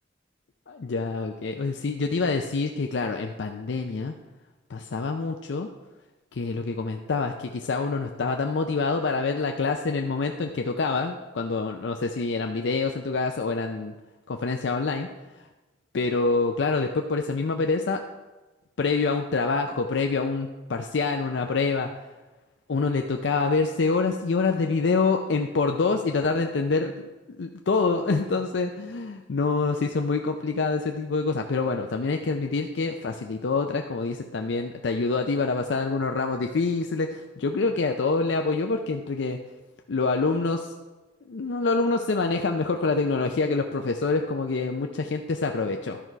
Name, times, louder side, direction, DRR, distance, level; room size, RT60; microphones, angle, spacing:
voice 1, 0.7-4.1 4.7-5.7 6.3-13.9 14.3-15.1 15.9-18.0 18.8-21.9 22.7-27.1 27.4-39.4 39.9-40.7 41.3-46.0, left 4 dB, 70° left, 4 dB, 0.5 m, -26 dB
12.0 x 4.6 x 5.5 m, 1.2 s
head